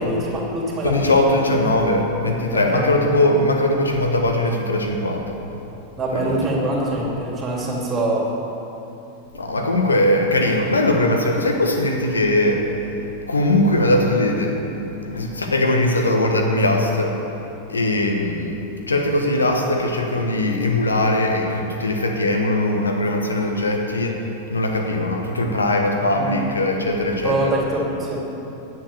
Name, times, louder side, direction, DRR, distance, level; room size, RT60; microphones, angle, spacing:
voice 1, 0.0-1.3 2.5-2.8 6.0-8.3 26.1-26.4 27.2-28.2, right 1 dB, 25° right, -2 dB, 2.6 m, -24 dB
voice 2, 0.8-5.3 6.2-6.4 9.3-12.6 13.3-17.2 17.7-18.6 18.9-24.2 24.5-27.5, left 1 dB, 75° left, 2 dB, 1.3 m, -20 dB
10.5 x 7.6 x 6.9 m, 3.0 s
figure-of-eight pair, 90°, 0 cm